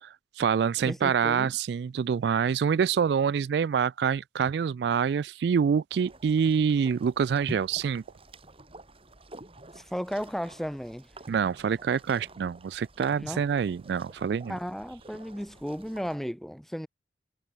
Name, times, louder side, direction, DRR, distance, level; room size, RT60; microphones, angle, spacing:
voice 1, 0.0-8.0 11.3-14.6, right 7 dB, 70° right, 0.3 m, -26 dB
voice 2, 0.8-1.5 9.7-11.1 13.2-13.4 14.4-16.9, equal, ahead, 1.6 m, -34 dB
sound 1, 5.9-16.2, right 1 dB, 35° right, 3.1 m, -47 dB
head